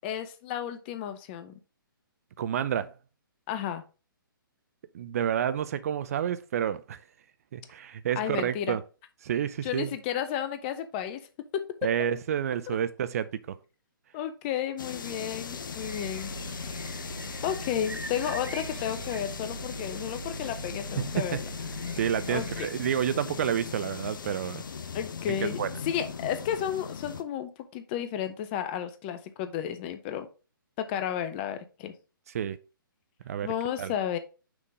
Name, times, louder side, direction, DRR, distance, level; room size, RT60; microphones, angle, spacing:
voice 1, 0.0-1.5 3.5-3.8 8.2-8.8 9.6-11.2 11.5-11.9 12.7-12.8 14.1-16.3 16.7-17.0 17.4-21.4 22.3-22.7 24.9-25.6 25.8-30.3 30.8-31.9 33.4-34.2, left 9 dB, 30° left, 0.7 m, -32 dB
voice 2, 2.4-2.9 4.9-7.0 7.5-8.8 9.2-9.9 11.8-13.6 21.0-21.4 21.9-24.6 25.3-25.7 32.3-32.6 33.3-33.5 33.8-33.9, right 9 dB, 40° right, 0.4 m, -29 dB
sound 1, 14.8-27.2, left 6 dB, 65° left, 0.8 m, -39 dB
sound 2, 15.8-22.7, right 3 dB, 85° right, 0.9 m, -41 dB
6.0 x 3.7 x 4.9 m
figure-of-eight pair, 135°, 12 cm